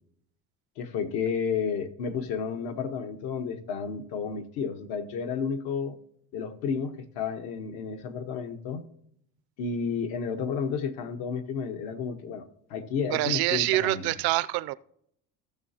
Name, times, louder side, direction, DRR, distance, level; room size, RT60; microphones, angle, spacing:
voice 1, 0.8-6.0 6.3-8.8 9.6-12.4 12.7-14.1, left 6 dB, 80° left, 1.2 m, -31 dB
voice 2, 13.1-14.7, right 18 dB, 75° right, 0.6 m, -26 dB
16.0 x 6.6 x 2.8 m
cardioid pair, 140°, 37 cm